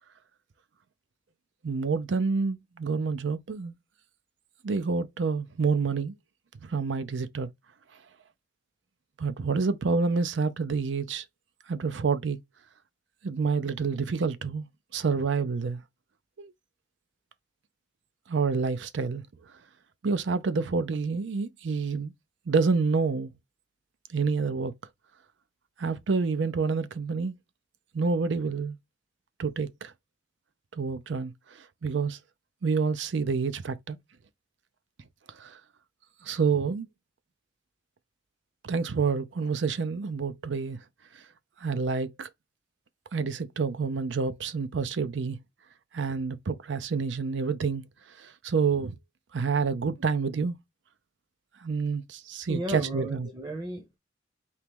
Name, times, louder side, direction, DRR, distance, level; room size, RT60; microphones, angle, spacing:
voice 1, 1.6-3.8 4.6-6.1 6.6-7.5 9.2-11.2 11.7-12.4 13.2-14.6 14.9-15.8 16.4-16.5 18.3-19.2 20.0-22.1 22.5-23.3 24.1-24.7 25.8-27.3 27.9-28.8 29.4-29.9 30.7-31.3 31.8-32.2 32.6-34.0 35.4-35.6 36.2-36.9 38.6-40.8 41.6-42.3 43.1-45.4 45.9-47.8 48.2-49.0 49.3-50.6 51.6-53.3, right 5 dB, 80° right, 0.5 m, -28 dB
voice 2, 52.5-54.0, right 1 dB, 25° right, 0.8 m, -34 dB
4.4 x 3.0 x 3.5 m
head